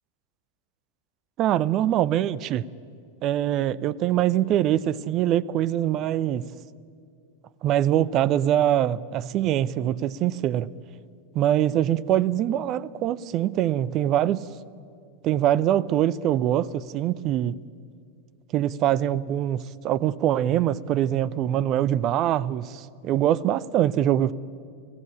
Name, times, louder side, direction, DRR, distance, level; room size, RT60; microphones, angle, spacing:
voice 1, 1.4-2.6 3.2-6.5 7.6-10.7 11.3-14.4 15.2-17.6 18.5-24.3, right 12 dB, 35° right, 21 dB, 0.6 m, -23 dB
26.0 x 16.5 x 10.0 m, 2.3 s
figure-of-eight pair, 90°, 0 cm